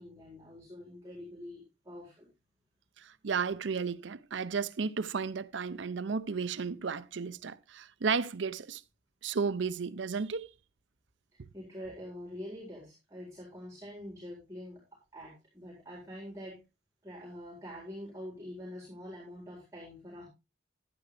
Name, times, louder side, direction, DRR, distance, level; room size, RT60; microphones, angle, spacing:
voice 1, 0.0-2.3 11.5-14.8 15.1-16.6 17.0-20.3, equal, 15° right, 4.5 m, -45 dB
voice 2, 3.2-8.8 9.2-10.5, right 5 dB, 80° right, 0.6 m, -33 dB
12.0 x 10.5 x 3.3 m
head